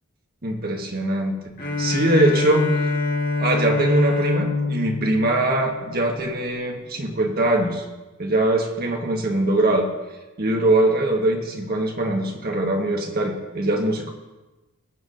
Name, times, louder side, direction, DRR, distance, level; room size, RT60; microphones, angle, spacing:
voice 1, 0.4-1.3 1.8-2.7 3.4-7.8 8.2-9.9 10.4-14.1, right 1 dB, 45° right, 2 dB, 1.6 m, -22 dB
Bowed string instrument, 1.6-6.3, left 3 dB, 45° left, 1.6 m, -25 dB
20.0 x 8.3 x 2.7 m, 1.1 s
head